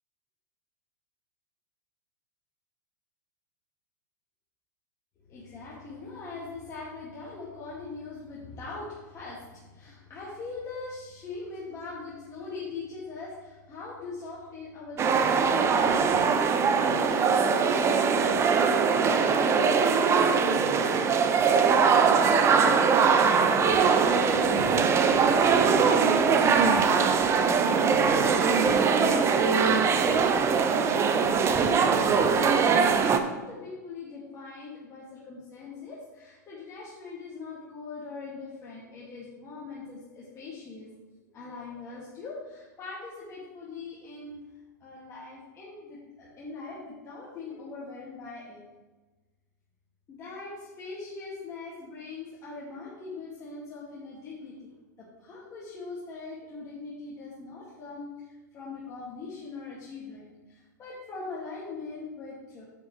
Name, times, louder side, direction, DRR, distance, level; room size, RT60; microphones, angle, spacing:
voice 1, 5.3-24.8 25.4-40.9 41.3-44.4 44.8-48.6 50.1-62.6, left 3 dB, 30° left, -7 dB, 2.3 m, -41 dB
sound 1, 15.0-33.2, right 5 dB, 25° right, 0.8 m, -22 dB
8.8 x 8.2 x 3.3 m, 1.2 s
hypercardioid pair, 95°, 10 cm